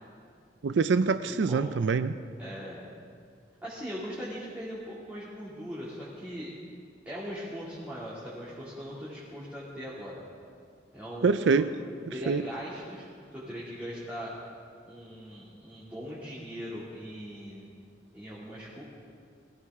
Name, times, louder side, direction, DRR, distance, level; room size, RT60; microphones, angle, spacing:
voice 1, 0.6-2.2 11.2-11.7 12.3-12.4, right 4 dB, 80° right, 12 dB, 0.4 m, -25 dB
voice 2, 2.4-2.8 3.6-6.5 7.1-10.2 10.9-11.7 12.1-14.3 14.9-17.7 18.1-18.8, equal, 10° right, -9 dB, 2.4 m, -40 dB
20.5 x 14.5 x 3.6 m, 2.2 s
head